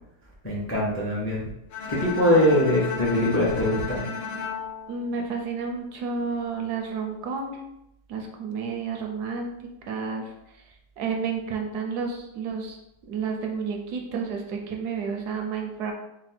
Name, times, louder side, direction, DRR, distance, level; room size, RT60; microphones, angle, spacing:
voice 1, 0.4-1.4 1.9-4.0, left 1 dB, 20° left, -4 dB, 0.3 m, -22 dB
Bowed string instrument, 1.7-5.9, left 5 dB, 90° left, 1.4 m, -35 dB
voice 2, 4.9-7.6 8.1-10.3 11.0-12.8 13.1-15.9, right 5 dB, 75° right, 2 dB, 1.1 m, -31 dB
4.1 x 2.1 x 4.2 m, 0.85 s
omnidirectional pair, 1.9 m